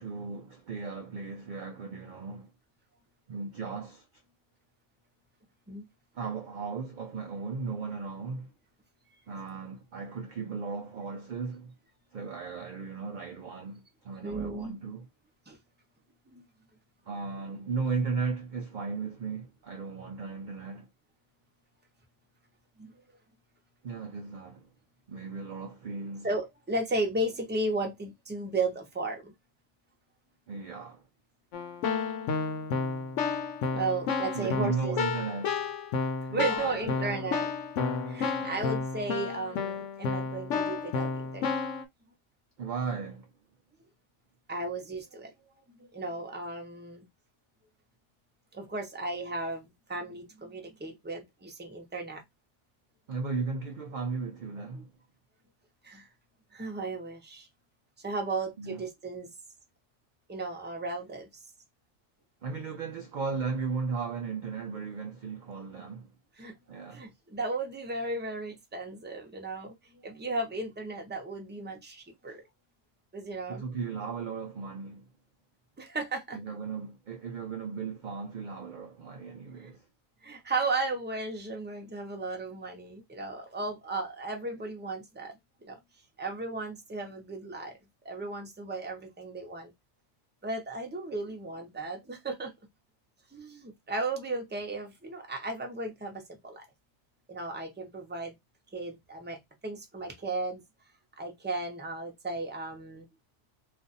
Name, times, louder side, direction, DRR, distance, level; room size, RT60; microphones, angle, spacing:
voice 1, 0.0-2.5 3.3-4.1 6.1-8.5 9.3-11.7 12.1-15.1 17.1-20.9 23.8-24.7 25.1-26.3 30.5-31.0 34.3-35.6 36.3-37.3 38.3-38.7 42.6-43.3 53.1-54.9 58.6-58.8 62.4-66.1 66.7-67.1 72.3-72.4 73.5-75.1 76.3-79.9, right 5 dB, 60° right, 0.5 m, -36 dB
voice 2, 14.2-14.7 15.5-15.6 16.3-16.4 22.8-23.0 26.2-29.3 33.7-35.0 36.3-37.5 38.0-41.6 44.5-45.3 45.8-47.0 48.5-52.2 55.8-56.1 56.5-57.5 58.0-59.3 60.3-61.4 66.4-66.5 66.9-72.4 73.1-73.6 75.8-76.4 80.2-85.8 86.2-87.8 88.0-89.7 90.4-92.5 93.3-96.6 97.3-98.3 98.7-100.6 101.2-103.1, right 2 dB, 10° right, 0.6 m, -35 dB
Keyboard (musical), 31.5-41.8, left 5 dB, 75° left, 1.0 m, -31 dB
2.5 x 2.4 x 3.9 m
omnidirectional pair, 1.3 m